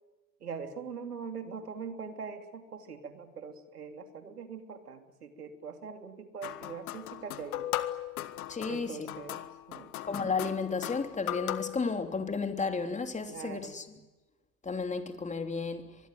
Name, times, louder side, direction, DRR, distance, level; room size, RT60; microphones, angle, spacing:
voice 1, 0.4-7.7 8.7-9.9 13.3-13.8, right 5 dB, 90° right, 3.1 m, -42 dB
sound 1, 6.4-11.8, left 13 dB, 70° left, 1.8 m, -38 dB
voice 2, 8.5-9.1 10.0-13.8 14.6-16.0, left 4 dB, 15° left, 3.2 m, -33 dB
24.5 x 21.5 x 9.2 m
hypercardioid pair, 90°, 44 cm